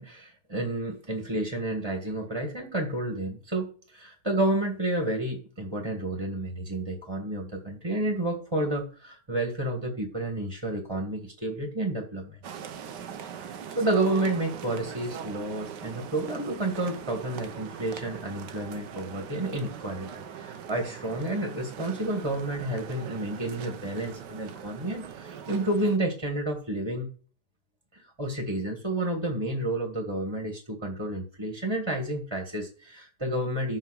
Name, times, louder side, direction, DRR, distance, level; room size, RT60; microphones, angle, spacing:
voice 1, 0.0-12.4 13.3-27.1 27.9-33.8, right 1 dB, 15° right, 3 dB, 1.6 m, -30 dB
sound 1, 12.4-26.0, right 7 dB, 90° right, 1.5 m, -41 dB
12.5 x 5.8 x 6.3 m, 0.42 s
omnidirectional pair, 1.8 m